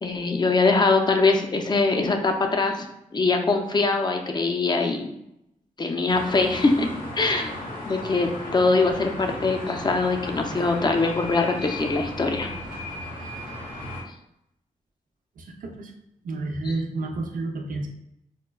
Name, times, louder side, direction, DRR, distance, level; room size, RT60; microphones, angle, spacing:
voice 1, 0.0-2.9 3.1-5.1 5.8-6.9 7.2-7.5 7.8-12.5, left 3 dB, 30° left, 4 dB, 0.5 m, -22 dB
sound 1, 6.1-14.0, left 1 dB, 90° left, 1.0 m, -35 dB
voice 2, 15.4-15.9 16.2-17.9, right 2 dB, 75° right, 2 dB, 0.6 m, -30 dB
5.1 x 2.2 x 2.3 m, 0.82 s
cardioid pair, 60°, 14 cm